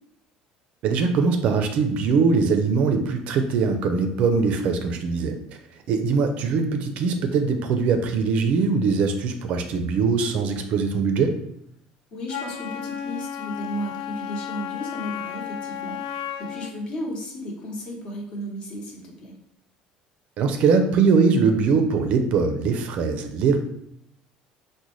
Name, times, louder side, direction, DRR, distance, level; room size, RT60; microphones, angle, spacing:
voice 1, 0.8-5.4 5.9-11.4 20.4-23.6, right 5 dB, 55° right, 6 dB, 0.4 m, -21 dB
voice 2, 12.1-19.4, equal, 40° left, -1 dB, 0.9 m, -34 dB
Wind instrument woodwind instrument, 12.3-16.8, left 9 dB, 85° left, 0.4 m, -33 dB
3.8 x 2.1 x 3.0 m, 0.75 s
cardioid pair, 140°, 3 cm